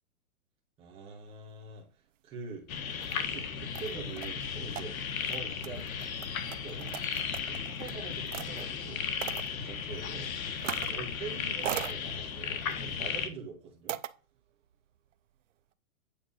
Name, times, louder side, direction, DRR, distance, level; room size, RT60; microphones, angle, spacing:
voice 1, 0.8-1.9 2.2-2.6 3.2-4.9 5.2-5.9 6.4-7.0 7.5-9.0 9.5-10.3 10.9-14.0, right 4 dB, 15° right, -2 dB, 1.8 m, -44 dB
sound 1, 2.7-13.3, left 7 dB, 70° left, 1.4 m, -35 dB
sound 2, 2.8-3.1 3.7-8.6 9.2-9.5 10.6-11.0 11.3-11.9 12.6-12.9 13.9-14.1, right 12 dB, 60° right, 0.6 m, -40 dB
8.8 x 3.7 x 5.6 m, 0.34 s
hypercardioid pair, 175°, 43 cm